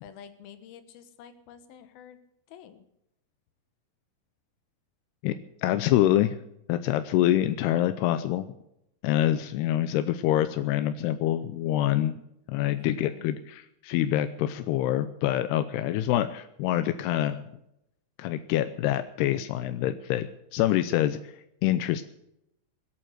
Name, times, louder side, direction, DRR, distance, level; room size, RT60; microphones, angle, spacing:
voice 1, 0.0-2.2 2.5-2.8 12.6-13.4, left 9 dB, 70° left, 10 dB, 3.0 m, -48 dB
voice 2, 5.6-6.4 6.7-8.5 9.0-12.1 12.5-17.4 18.2-21.3 21.6-22.0, left 13 dB, 85° left, 11 dB, 2.7 m, -26 dB
22.0 x 9.0 x 6.6 m, 0.80 s
omnidirectional pair, 4.6 m